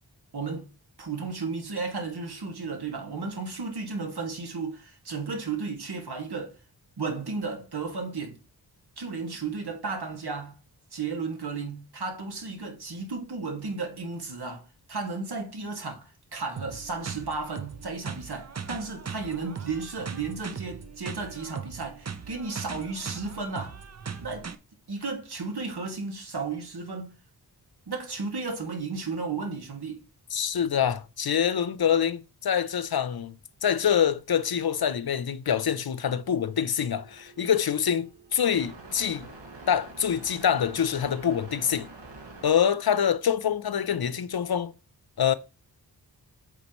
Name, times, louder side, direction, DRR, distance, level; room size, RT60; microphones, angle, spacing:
voice 1, 0.3-0.7 1.0-6.6 7.0-8.4 9.0-10.6 10.9-23.8 24.2-24.5 24.9-27.1 27.9-30.0, right 4 dB, 65° right, 2.2 m, -34 dB
sound 1, 16.6-24.6, right 6 dB, 40° right, 0.7 m, -39 dB
voice 2, 30.3-39.3 39.7-41.9 42.4-44.7 45.2-45.3, left 8 dB, 60° left, 0.7 m, -25 dB
sound 2, 36.1-42.8, right 2 dB, 85° right, 2.1 m, -47 dB
8.6 x 5.1 x 3.1 m
wide cardioid pair, 80°, 42 cm